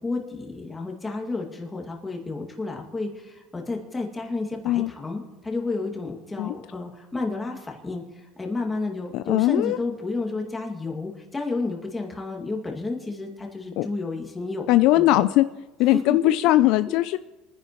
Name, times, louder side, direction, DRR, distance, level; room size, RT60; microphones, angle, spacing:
voice 1, 0.0-14.7 14.9-15.2 15.9-16.5, left 3 dB, 10° left, 1 dB, 2.1 m, -31 dB
voice 2, 9.1-9.8 13.8-13.9 14.7-15.5 15.8-17.2, left 16 dB, 65° left, 12 dB, 0.4 m, -20 dB
29.0 x 10.0 x 3.1 m, 1.1 s
cardioid pair, 140°, 0 cm